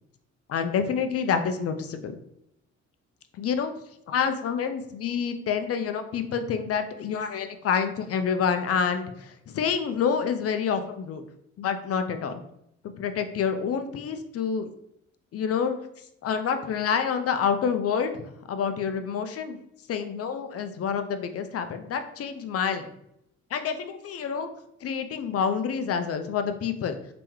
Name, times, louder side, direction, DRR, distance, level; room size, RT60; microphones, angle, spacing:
voice 1, 0.5-2.2 3.3-3.7 4.1-11.2 11.6-12.4 13.0-14.7 15.3-15.8 16.2-19.6 19.9-22.9 23.5-24.5 24.8-26.9, left 6 dB, 50° left, 9 dB, 0.5 m, -28 dB
3.5 x 2.9 x 3.0 m, 0.75 s
cardioid pair, 90°, 30 cm